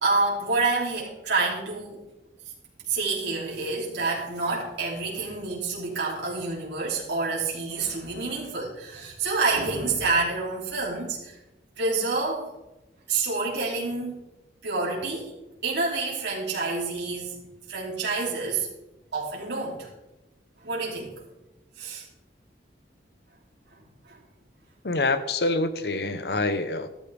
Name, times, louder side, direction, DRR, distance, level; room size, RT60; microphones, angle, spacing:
voice 1, 0.0-2.0 2.9-11.3 11.8-12.5 13.1-14.2 14.6-15.3 15.6-17.4 17.7-18.7 19.1-19.9 20.6-21.1 21.8-22.0 24.1-24.2, right 3 dB, 80° right, -4 dB, 3.0 m, -28 dB
voice 2, 24.8-26.9, left 2 dB, 60° left, 11 dB, 0.9 m, -26 dB
13.0 x 13.0 x 3.5 m, 0.96 s
head